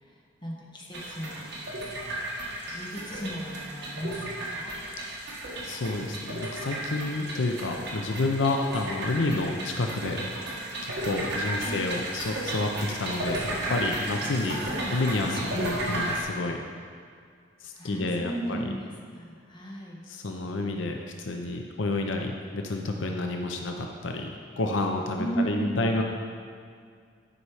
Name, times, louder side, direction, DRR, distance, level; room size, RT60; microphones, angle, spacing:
voice 1, 0.4-1.5 2.7-4.8 11.5-11.8 14.4-14.9 15.2-15.7 17.7-20.0 25.2-26.0, right 1 dB, 25° left, -3 dB, 1.5 m, -35 dB
sound 1, 0.9-16.2, right 1 dB, 65° right, 1.6 m, -34 dB
voice 2, 5.6-10.2 10.8-14.6 14.9-16.6 17.6-18.7 20.1-26.0, left 2 dB, 80° left, 2 dB, 0.7 m, -29 dB
11.0 x 5.5 x 4.9 m, 2.2 s
head